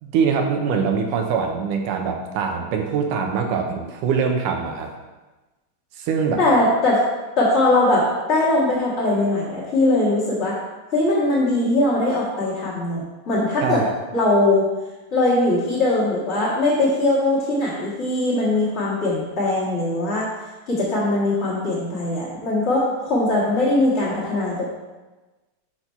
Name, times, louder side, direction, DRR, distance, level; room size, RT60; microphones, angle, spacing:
voice 1, 0.0-4.9 6.0-6.4 13.6-13.9, right 6 dB, 90° right, 3 dB, 2.4 m, -23 dB
voice 2, 6.4-7.0 7.4-10.6 10.9-13.8 14.1-14.7 15.1-20.3 20.7-24.7, left 2 dB, 35° left, -9 dB, 1.1 m, -20 dB
6.2 x 4.5 x 5.5 m, 1.2 s
omnidirectional pair, 3.6 m